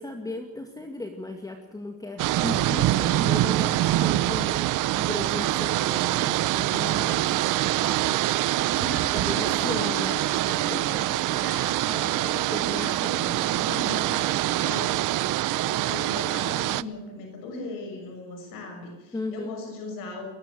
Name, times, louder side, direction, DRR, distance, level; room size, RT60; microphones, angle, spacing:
voice 1, 0.0-8.3 9.1-10.2 10.7-11.0 12.0-13.3 19.1-19.5, left 2 dB, 10° left, 4 dB, 2.2 m, -36 dB
sound 1, 2.2-16.8, right 15 dB, 70° right, 0.8 m, -25 dB
voice 2, 8.5-20.3, left 2 dB, 90° left, 3 dB, 6.3 m, -39 dB
22.5 x 20.0 x 6.4 m, 1.2 s
cardioid pair, 150°, 32 cm